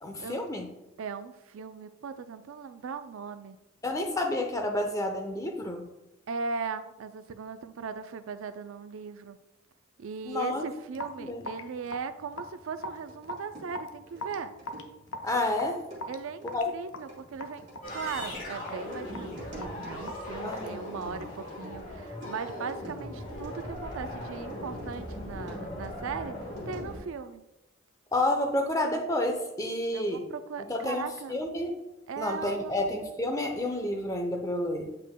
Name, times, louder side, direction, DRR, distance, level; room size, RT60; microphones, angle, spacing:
voice 1, 0.0-0.7 3.8-5.9 10.2-10.6 11.2-11.4 15.2-15.8 16.5-16.7 20.4-20.8 28.1-30.3 30.7-31.8 32.2-34.9, left 1 dB, 15° left, 4 dB, 0.6 m, -30 dB
voice 2, 1.0-3.6 6.3-9.4 10.0-14.5 16.1-17.7 17.9-26.4 26.7-27.4 29.9-31.3 32.1-32.7, right 5 dB, 80° right, 11 dB, 0.4 m, -38 dB
Raindrop / Drip, 10.9-21.5, left 1 dB, 70° left, 0.6 m, -43 dB
sound 1, 13.0-25.1 25.5-27.1, right 1 dB, 35° right, 2.0 m, -50 dB
sound 2, 17.8-27.0, left 1 dB, 40° left, 1.3 m, -39 dB
8.3 x 5.1 x 2.2 m, 0.95 s
head